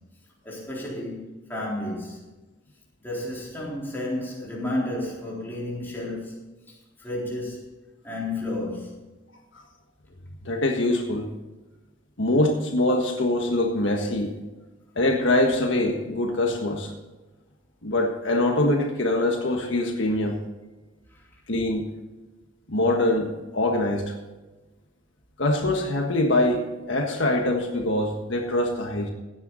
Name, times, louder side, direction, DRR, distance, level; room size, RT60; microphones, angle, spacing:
voice 1, 0.4-2.2 3.0-6.4 7.0-7.7 8.0-8.9 21.1-21.2, left 1 dB, 10° left, 3.8 m, -32 dB
voice 2, 10.4-11.3 12.2-14.3 14.9-16.9 17.8-20.4 21.5-21.9 22.7-24.2 25.4-29.1, left 1 dB, 70° left, 1.5 m, -23 dB
16.0 x 9.4 x 4.0 m
head